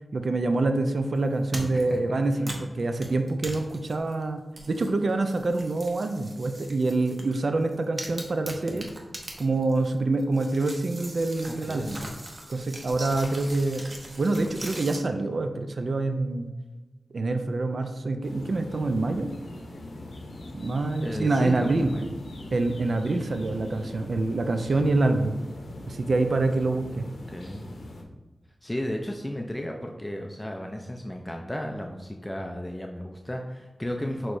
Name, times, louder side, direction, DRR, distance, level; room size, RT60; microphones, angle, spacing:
voice 1, 0.1-2.5 2.8-8.9 9.4-12.0 12.5-13.8 14.2-16.5 17.1-19.3 20.5-21.9 22.5-25.4 25.9-27.1, right 2 dB, 65° right, 7 dB, 0.3 m, -26 dB
sound 1, 1.5-2.0 2.3-4.2 4.6-7.4 7.7-9.9 10.2-15.0, right 1 dB, 45° right, 0.8 m, -40 dB
voice 2, 1.7-2.2 2.5-2.6 11.7-12.0 21.0-22.1 27.3-27.7 28.6-34.4, left 1 dB, 15° left, 2 dB, 0.4 m, -34 dB
sound 2, 18.2-28.0, left 1 dB, 85° left, 0.6 m, -41 dB
6.2 x 3.0 x 2.5 m, 1.2 s
wide cardioid pair, 70°, 0 cm